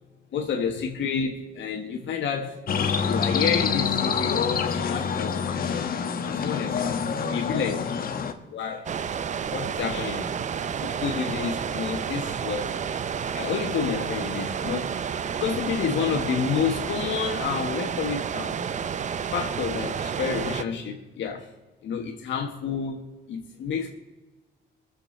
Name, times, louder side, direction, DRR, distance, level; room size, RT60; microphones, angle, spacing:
voice 1, 0.3-2.5 3.0-5.6 6.2-6.9 7.3-7.9 8.5-8.8 9.5-10.3 11.0-12.7 13.3-15.1 15.4-18.6 19.3-21.5 21.8-23.0 23.3-24.0, left 6 dB, 70° left, 3 dB, 1.3 m, -29 dB
sound 1, 2.7-8.3, left 6 dB, 50° left, 1.2 m, -26 dB
sound 2, 8.9-20.6, right 7 dB, 40° right, 0.5 m, -30 dB
21.5 x 7.7 x 4.4 m, 1.2 s
cardioid pair, 120°, 20 cm